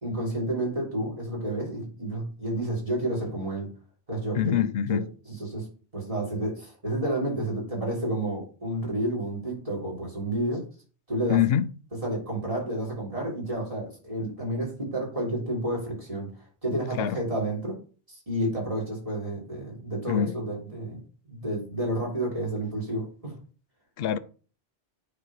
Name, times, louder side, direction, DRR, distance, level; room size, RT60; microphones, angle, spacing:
voice 1, 0.0-3.7 4.1-4.5 4.9-5.7 5.9-10.6 11.1-11.4 11.9-16.3 16.6-17.8 18.1-21.0 21.3-23.4, right 1 dB, 30° right, 3.7 m, -30 dB
voice 2, 4.3-5.1 11.3-11.7 17.0-17.2 20.1-20.4 24.0-24.2, left 10 dB, 60° left, 0.8 m, -24 dB
9.2 x 4.2 x 4.8 m
omnidirectional pair, 1.2 m